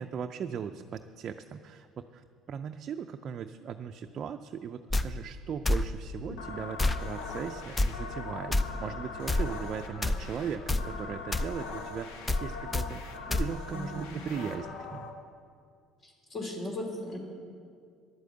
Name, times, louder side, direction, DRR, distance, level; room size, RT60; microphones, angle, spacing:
voice 1, 0.0-12.1 12.4-15.1, right 7 dB, 50° right, 5 dB, 0.4 m, -38 dB
sound 1, 4.9-5.1 5.7-5.9 6.8-7.0 7.8-7.9 8.5-8.6 9.3-9.5 10.0-10.2 10.7-10.9 11.3-11.5 12.3-12.4 12.7-12.9 13.3-13.5, left 2 dB, 20° left, 0.6 m, -26 dB
sound 2, 6.3-15.1, left 4 dB, 80° left, 1.1 m, -41 dB
voice 2, 13.7-14.2 16.0-17.2, left 1 dB, 40° left, 0 dB, 3.0 m, -37 dB
11.0 x 8.3 x 7.9 m, 2.2 s
supercardioid pair, 75°, 0 cm